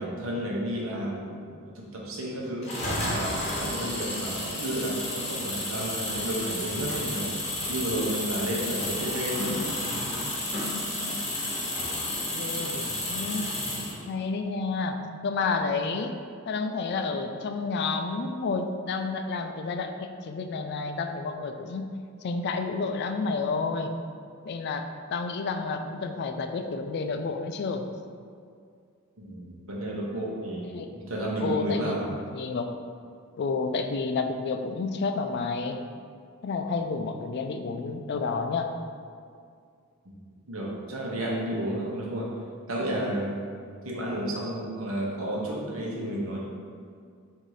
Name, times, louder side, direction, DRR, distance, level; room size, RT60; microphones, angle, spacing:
voice 1, 0.0-1.4 1.7-2.7 3.1-7.3 7.7-9.6 29.2-32.1 40.5-42.3 42.7-43.4 43.8-46.4, right 1 dB, 70° right, -3 dB, 1.0 m, -32 dB
sound 1, 2.6-14.0, left 1 dB, 30° left, 1.0 m, -31 dB
voice 2, 11.1-11.9 12.4-13.5 14.1-16.1 16.5-21.9 22.2-23.9 24.4-27.8 30.7-30.9 31.4-32.1 32.3-32.7 33.4-35.8 36.4-38.7, left 4 dB, 50° left, 6 dB, 0.3 m, -30 dB
4.0 x 2.7 x 4.7 m, 2.2 s
head